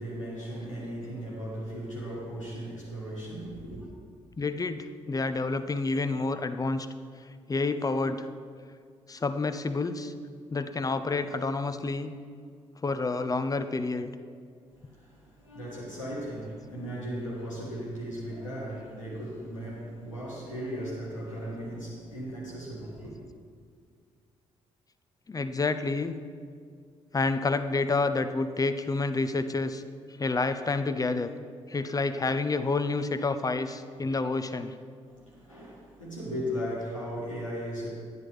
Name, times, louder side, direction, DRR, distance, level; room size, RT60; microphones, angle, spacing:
voice 1, 0.0-3.9 14.7-23.2 35.1-37.9, equal, 90° left, -7 dB, 1.7 m, -37 dB
voice 2, 4.4-6.9 7.5-8.3 9.1-10.1 10.5-12.1 12.8-14.1 25.3-26.2 27.1-29.8 30.2-31.3 31.7-34.8, left 3 dB, 20° left, 10 dB, 0.6 m, -29 dB
10.5 x 9.9 x 3.2 m, 2.2 s
figure-of-eight pair, 40°, 16 cm